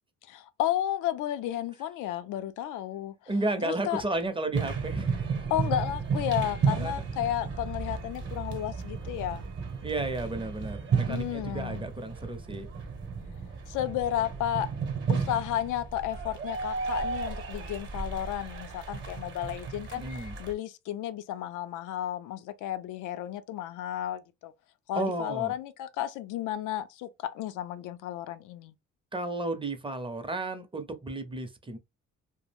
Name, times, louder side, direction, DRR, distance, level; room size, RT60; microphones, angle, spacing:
voice 1, 0.3-3.1 3.6-4.0 5.5-9.4 11.1-11.9 13.7-14.7 15.1-20.0 20.4-24.5 24.9-28.7, left 12 dB, 85° left, 0.5 m, -32 dB
voice 2, 3.3-5.3 6.7-7.0 9.8-12.7 19.9-20.4 24.9-25.5 29.1-31.8, right 2 dB, 15° right, 0.6 m, -33 dB
sound 1, 4.5-20.5, right 5 dB, 40° right, 0.8 m, -33 dB
2.3 x 2.0 x 3.3 m
cardioid pair, 90°, 30 cm